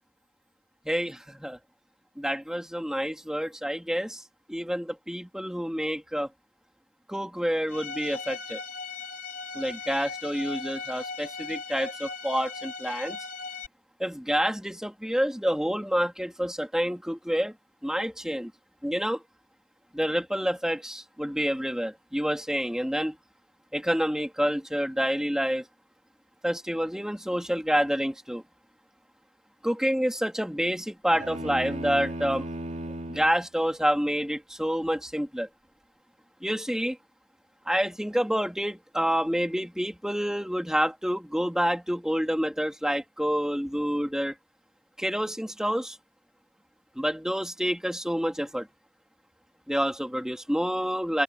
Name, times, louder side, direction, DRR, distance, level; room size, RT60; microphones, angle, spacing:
voice 1, 0.9-1.6 2.2-4.2 4.5-6.3 7.1-8.6 9.5-13.2 14.0-17.5 17.8-18.5 18.8-19.2 19.9-23.2 23.7-25.7 26.4-28.4 29.6-32.5 33.1-35.5 36.4-37.0 37.7-44.3 45.0-46.0 47.0-48.7 49.7-51.2, equal, 5° right, 2.5 m, -28 dB
Bowed string instrument, 7.7-13.7, left 4 dB, 50° left, 4.2 m, -38 dB
sound 1, 31.1-33.4, right 1 dB, 40° right, 3.2 m, -35 dB
open air
head